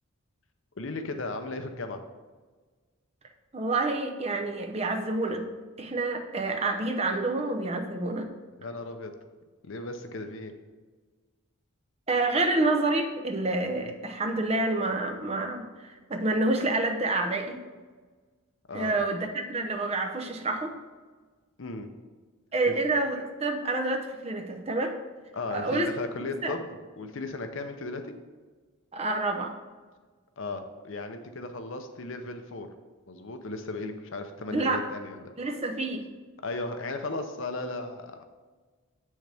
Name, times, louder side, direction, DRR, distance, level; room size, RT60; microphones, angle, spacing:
voice 1, 0.8-2.0 8.6-9.1 9.6-10.5 13.7-13.9 18.7-19.0 21.6-21.9 22.7-22.8 25.3-28.1 30.4-32.7 33.1-35.3 36.4-38.2, left 2 dB, 60° left, 7 dB, 0.6 m, -36 dB
voice 2, 3.5-5.4 5.8-8.3 12.1-17.6 18.7-20.7 22.5-24.9 25.5-25.9 26.4-26.6 28.9-29.5 34.5-34.8 35.4-36.0, right 2 dB, 30° right, 3 dB, 0.6 m, -28 dB
7.6 x 6.4 x 3.4 m, 1.4 s
head